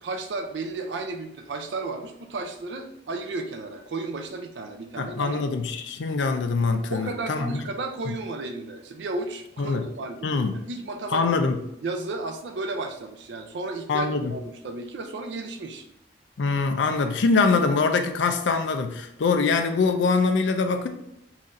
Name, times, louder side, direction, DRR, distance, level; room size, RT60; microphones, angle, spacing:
voice 1, 0.0-5.4 6.9-10.4 10.7-11.2 11.8-15.8, right 3 dB, 80° right, 0.4 m, -33 dB
voice 2, 5.0-7.6 8.1-8.2 9.6-9.9 10.2-10.6 11.1-11.6 13.9-14.3 16.4-20.9, left 4 dB, 90° left, 0.4 m, -24 dB
4.0 x 2.5 x 4.0 m
head